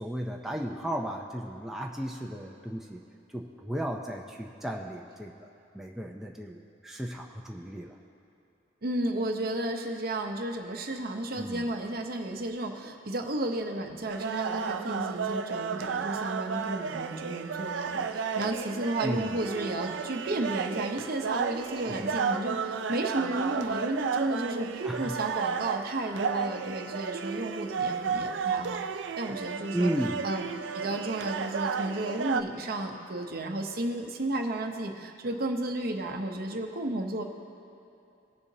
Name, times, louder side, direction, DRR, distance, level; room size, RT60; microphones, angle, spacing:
voice 1, 0.0-3.0 3.3-5.5 5.7-8.0 11.3-11.7 19.0-19.4 21.9-22.2 24.8-25.2 29.7-30.3, right 1 dB, ahead, -1 dB, 0.5 m, -34 dB
voice 2, 8.8-28.8 29.2-29.9 30.2-30.5 30.7-37.2, right 1 dB, 55° right, 4 dB, 0.9 m, -33 dB
sound 1, 14.1-32.4, right 6 dB, 75° right, 0.4 m, -33 dB
19.5 x 6.9 x 2.8 m, 2.8 s
head